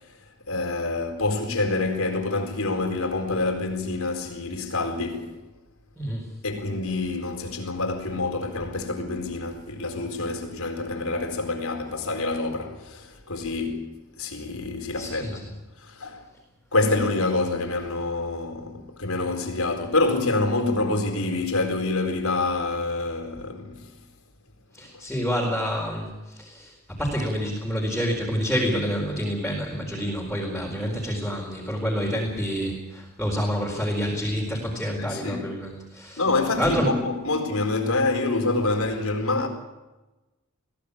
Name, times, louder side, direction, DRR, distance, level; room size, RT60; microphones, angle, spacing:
voice 1, 0.5-5.4 6.4-15.4 15.8-16.3 16.7-23.9 35.0-35.5 36.2-39.5, left 2 dB, 90° left, 4.4 m, -27 dB
voice 2, 6.0-6.3 15.0-15.5 24.7-36.2 36.6-37.0, equal, 5° left, 4.4 m, -28 dB
22.0 x 16.5 x 8.6 m
head